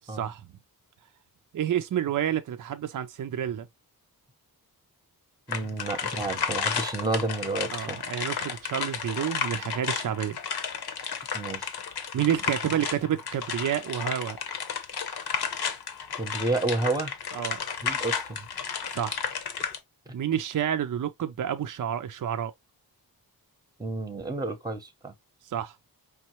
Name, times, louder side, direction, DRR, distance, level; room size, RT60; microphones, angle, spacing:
voice 1, 0.1-0.5 1.5-3.7 7.7-10.4 12.1-14.4 17.4-17.6 18.9-19.2 20.1-22.5 25.5-25.8, right 10 dB, 60° right, 0.5 m, -29 dB
sound 1, 5.5-19.8, left 7 dB, 90° left, 0.9 m, -33 dB
voice 2, 5.5-8.0 11.3-11.8 16.1-17.1 17.8-18.5 19.6-19.7 20.1-20.2 23.8-25.1, right 2 dB, 10° right, 0.8 m, -30 dB
5.2 x 3.1 x 3.0 m
wide cardioid pair, 140°, 37 cm